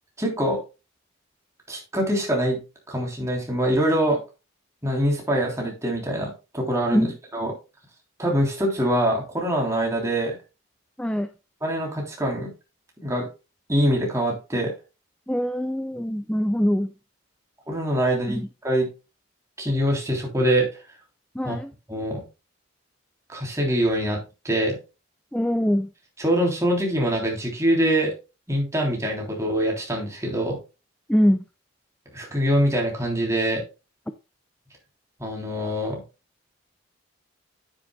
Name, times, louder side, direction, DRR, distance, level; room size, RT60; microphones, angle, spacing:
voice 1, 0.2-0.6 1.7-2.6 2.9-4.2 4.8-7.5 8.2-10.4 11.6-12.5 13.0-13.3 13.7-14.7 17.7-18.9 19.6-20.7 21.4-21.6 21.9-22.2 23.3-24.8 26.2-28.2 28.5-30.6 32.1-33.6 35.2-36.0, right 1 dB, 15° right, 0 dB, 3.3 m, -24 dB
voice 2, 11.0-11.3 15.3-16.9 18.3-18.4 21.3-21.7 25.3-25.9 31.1-31.4, equal, 5° left, 9 dB, 0.5 m, -23 dB
9.9 x 9.6 x 2.3 m, 0.28 s
head